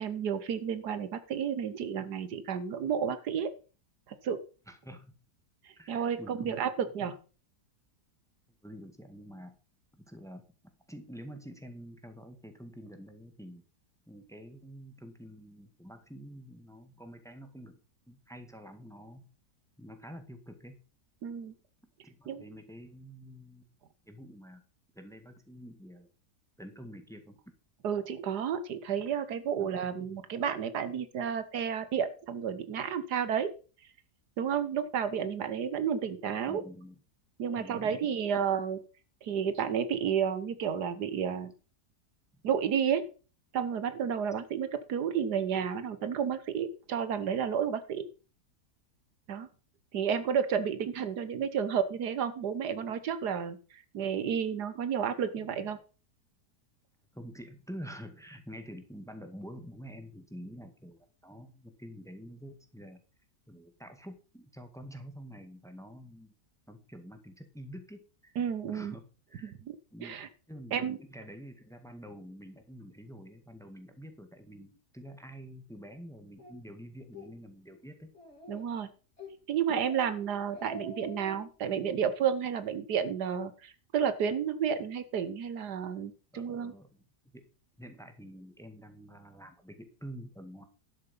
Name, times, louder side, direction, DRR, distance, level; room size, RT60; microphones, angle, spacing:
voice 1, 0.0-3.5 4.1-4.4 5.6-7.2 21.2-21.5 22.3-22.4 27.8-33.5 34.4-36.6 37.4-38.8 39.2-41.5 42.4-43.0 43.5-48.0 49.3-49.5 49.9-55.8 68.4-69.0 69.4-69.7 70.0-70.3 70.7-71.0 78.5-78.9 79.5-86.7, right 7 dB, 80° right, 12 dB, 1.6 m, -31 dB
voice 2, 4.7-5.1 5.8-6.6 7.1-7.2 8.6-9.6 9.9-10.4 10.9-13.6 14.1-17.8 18.1-19.3 19.8-20.7 22.0-23.7 24.1-24.6 25.0-26.1 26.6-27.5 29.6-29.7 36.5-37.0 37.6-37.9 42.3-42.4 57.1-63.0 63.5-66.3 66.7-68.4 68.6-69.5 69.9-70.2 70.5-78.1 86.3-87.0 87.3-87.5 87.8-90.6, equal, ahead, 7 dB, 1.7 m, -47 dB
Speech, 76.4-76.5 77.0-77.3 77.7-77.8 78.1-78.8 79.2-79.4 79.7-80.1 80.4-81.5, left 2 dB, 40° left, 3.7 m, -46 dB
12.0 x 6.9 x 5.5 m, 0.36 s
omnidirectional pair, 1.7 m